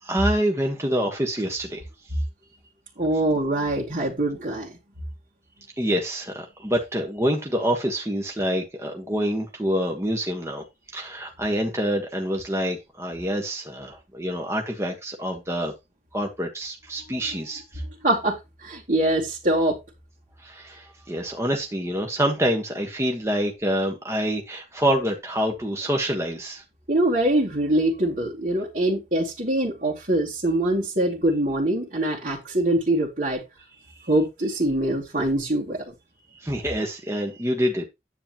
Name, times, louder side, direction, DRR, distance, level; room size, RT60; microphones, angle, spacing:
voice 1, 0.0-1.8 5.8-10.6 10.9-15.7 16.1-17.8 20.4-26.6 33.9-34.1 36.4-37.8, equal, 15° right, 1.4 m, -26 dB
voice 2, 3.0-4.8 18.0-19.8 26.9-33.4 34.1-35.9, right 1 dB, 50° right, 2.6 m, -23 dB
9.9 x 8.8 x 3.0 m
head